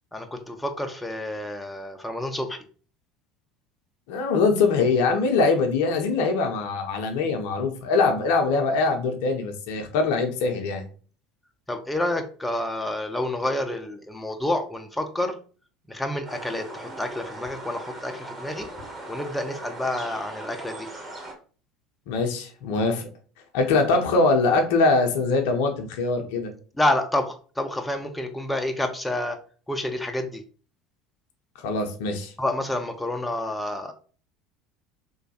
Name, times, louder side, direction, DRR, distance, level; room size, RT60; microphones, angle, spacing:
voice 1, 0.1-2.6 11.7-15.4 15.9-18.7 19.1-20.9 26.8-29.4 29.7-30.4 32.4-33.9, left 1 dB, 10° left, 5 dB, 0.4 m, -29 dB
voice 2, 4.1-10.8 22.1-23.0 23.5-26.5 31.6-32.3, left 3 dB, 60° left, 5 dB, 0.5 m, -23 dB
sound 1, 16.2-21.3, right 2 dB, 15° right, 1.0 m, -39 dB
3.1 x 2.2 x 2.7 m, 0.40 s
figure-of-eight pair, 65°, 0 cm